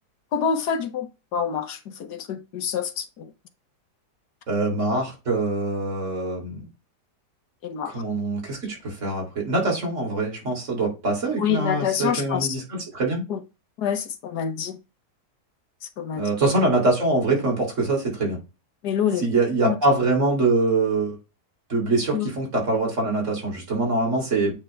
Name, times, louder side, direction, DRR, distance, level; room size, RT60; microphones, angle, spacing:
voice 1, 0.3-3.3 7.6-8.0 11.4-12.6 13.3-13.4 13.8-14.8 16.0-16.2 18.8-19.2 19.6-19.8 22.1-22.3, left 8 dB, 70° left, 1.5 m, -26 dB
voice 2, 4.5-6.7 7.8-13.2 16.1-18.4 19.2-21.2 21.7-24.5, right 2 dB, 45° right, 3.4 m, -24 dB
8.7 x 3.5 x 3.3 m
omnidirectional pair, 1.8 m